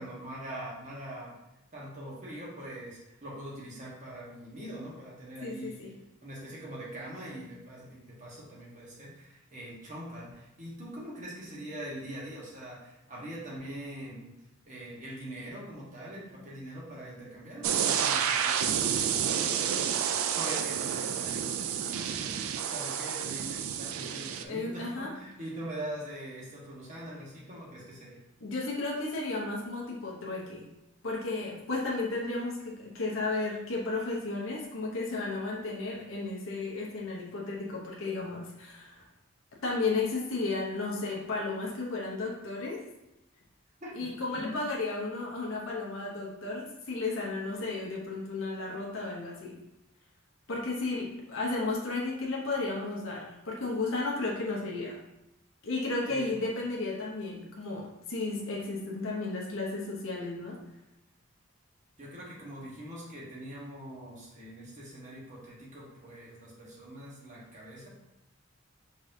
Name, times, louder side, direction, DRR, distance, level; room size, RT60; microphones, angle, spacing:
voice 1, 0.0-1.4 1.7-5.9 6.2-14.3 14.7-28.2 43.8-44.1 44.4-44.6 56.0-56.4 62.0-67.9, right 1 dB, 35° right, -4 dB, 1.3 m, -43 dB
voice 2, 5.4-6.0 24.5-25.1 28.4-30.7 31.0-39.0 39.6-42.8 43.9-49.6 50.5-55.0 55.6-60.6, left 3 dB, 70° left, -3 dB, 0.8 m, -33 dB
sound 1, 17.6-24.4, right 8 dB, 85° right, 0.4 m, -30 dB
4.9 x 3.8 x 2.7 m, 0.93 s
head